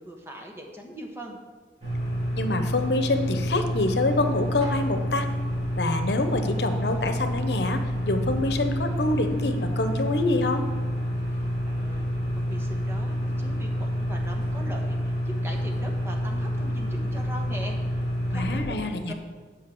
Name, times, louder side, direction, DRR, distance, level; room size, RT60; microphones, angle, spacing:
voice 1, 0.0-1.4 11.2-12.1 12.3-19.1, equal, 15° right, 1 dB, 1.3 m, -41 dB
sound 1, 1.8-18.6, equal, 40° right, 3.3 m, -28 dB
voice 2, 2.3-5.3 5.8-10.7 18.3-19.1, left 2 dB, 75° left, 7 dB, 0.9 m, -26 dB
8.9 x 5.6 x 7.8 m, 1.4 s
head